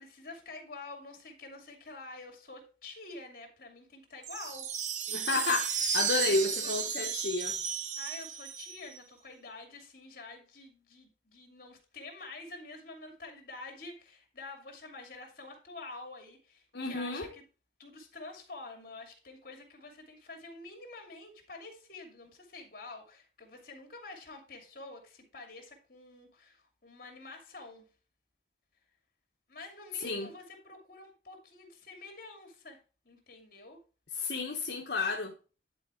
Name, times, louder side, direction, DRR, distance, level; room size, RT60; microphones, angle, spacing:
voice 1, 0.0-4.7 6.1-7.1 8.0-17.4 17.8-27.9 29.5-32.8 33.0-33.8, left 3 dB, 55° left, 2.6 m, -48 dB
sound 1, 4.2-9.0, right 7 dB, 45° right, 0.9 m, -33 dB
voice 2, 5.1-7.6 16.7-17.3 30.0-30.3 34.2-35.3, left 3 dB, 70° left, 1.2 m, -31 dB
10.5 x 4.6 x 4.5 m
head